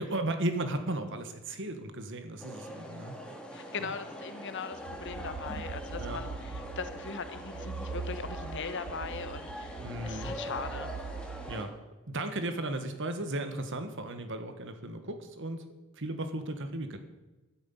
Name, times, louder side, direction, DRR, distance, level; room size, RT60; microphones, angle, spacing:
voice 1, 0.0-3.2 3.8-3.9 6.0-6.2 9.8-10.3 11.5-11.7 12.1-15.7 15.9-17.0, right 1 dB, 60° right, 8 dB, 1.6 m, -35 dB
sound 1, 2.4-11.6, equal, 5° left, 2.1 m, -43 dB
voice 2, 3.5-10.9, left 5 dB, 55° left, 10 dB, 1.2 m, -40 dB
sound 2, 4.7-11.5, right 5 dB, 75° right, 0.4 m, -42 dB
12.0 x 9.6 x 8.6 m, 1.1 s
head